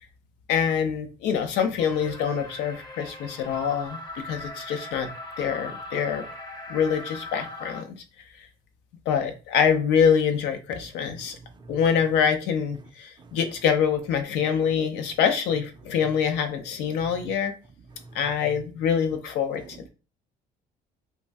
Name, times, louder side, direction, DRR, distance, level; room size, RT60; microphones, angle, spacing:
voice 1, 0.5-5.1 5.4-6.2 6.7-8.0 8.4-8.5 9.1-11.4 11.7-17.5 18.1-19.9, left 7 dB, 90° left, 0.5 m, -25 dB
sound 1, 1.8-7.8, left 2 dB, 25° left, 0.6 m, -40 dB
voice 2, 11.5-11.8 13.2-13.4 18.0-18.2 19.7-19.9, right 3 dB, 25° right, 0.4 m, -47 dB
2.5 x 2.1 x 3.3 m
cardioid pair, 110°, 17 cm